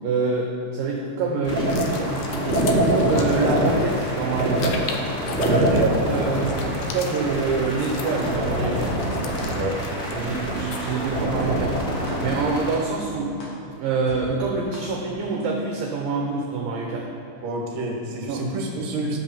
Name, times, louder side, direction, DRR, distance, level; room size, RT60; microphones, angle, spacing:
voice 1, 0.0-4.8 5.4-6.7 6.9-8.9 10.0-11.8 12.2-13.3 13.8-17.1 18.3-18.4, right 4 dB, 75° right, -1 dB, 2.2 m, -26 dB
sound 1, 1.4-12.7, equal, 25° left, 2.0 m, -25 dB
sound 2, 1.6-11.0, left 5 dB, 75° left, 2.4 m, -39 dB
voice 2, 5.5-5.9 9.5-9.8 17.4-19.2, right 2 dB, 55° right, -2 dB, 2.3 m, -29 dB
sound 3, 8.1-8.2 8.7-8.8 9.4-9.5 10.1-10.2 10.7-10.8 11.4-11.5 12.1-12.2 12.7-12.8 13.4-13.5 14.1-14.2 14.7-14.8 15.4-15.5, left 3 dB, 60° left, 1.7 m, -41 dB
11.0 x 5.4 x 7.0 m, 2.8 s
omnidirectional pair, 4.7 m